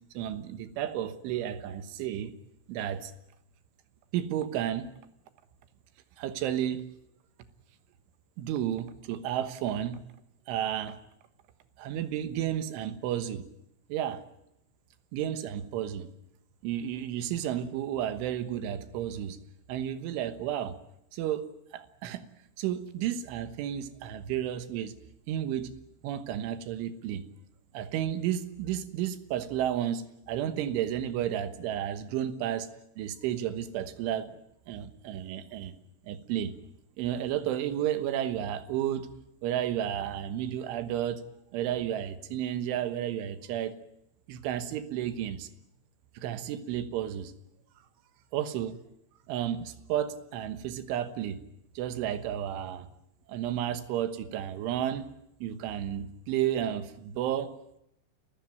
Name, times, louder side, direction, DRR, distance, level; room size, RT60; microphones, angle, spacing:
voice 1, 0.2-2.3 2.7-3.1 4.1-4.9 6.2-6.9 8.4-10.0 10.5-11.0 11.8-13.5 13.9-14.2 15.1-16.1 16.6-19.4 19.7-20.8 21.1-21.5 21.7-22.2 22.6-25.0 25.3-25.7 26.0-27.2 27.7-32.7 33.0-34.4 34.7-35.7 36.1-36.5 37.0-39.1 39.4-41.2 41.5-43.8 44.3-45.5 46.2-47.3 48.3-48.8 49.3-51.4 51.8-52.9 53.3-55.1 55.4-57.5, right 10 dB, 80° right, 11 dB, 3.7 m, -32 dB
29.0 x 15.5 x 9.3 m, 0.80 s
omnidirectional pair, 5.6 m